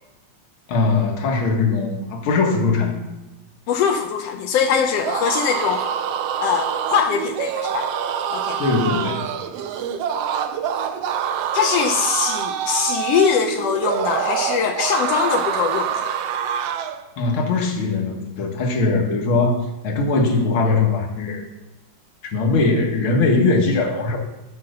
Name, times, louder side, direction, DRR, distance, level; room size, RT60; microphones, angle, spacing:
voice 1, 0.7-3.0 8.6-9.3 17.2-21.4 22.3-24.2, left 3 dB, 50° left, 2 dB, 1.9 m, -20 dB
voice 2, 3.7-5.9 6.4-7.9 8.3-8.6 11.5-16.1, left 7 dB, 75° left, 4 dB, 1.4 m, -22 dB
sound 1, 4.9-17.0, right 8 dB, 85° right, 1.4 m, -25 dB
12.0 x 5.7 x 6.5 m, 1.1 s
omnidirectional pair, 3.6 m